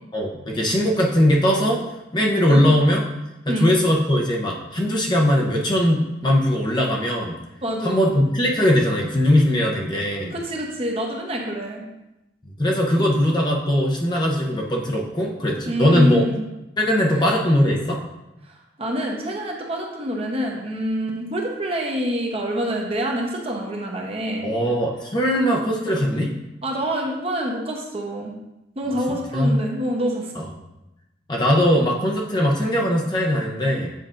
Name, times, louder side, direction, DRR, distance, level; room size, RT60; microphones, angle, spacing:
voice 1, 0.1-1.8 2.1-3.0 3.6-7.3 7.8-10.3 12.6-16.2 16.8-18.0 24.4-26.3 29.1-29.6 30.4-30.5 31.3-33.9, equal, 25° left, -1 dB, 0.7 m, -20 dB
voice 2, 7.6-8.1 10.3-11.8 13.0-13.1 15.6-16.4 17.1-17.2 18.4-24.5 26.6-28.3 28.8-30.3, equal, 30° right, -1 dB, 0.9 m, -27 dB
7.6 x 5.0 x 2.5 m, 0.95 s
head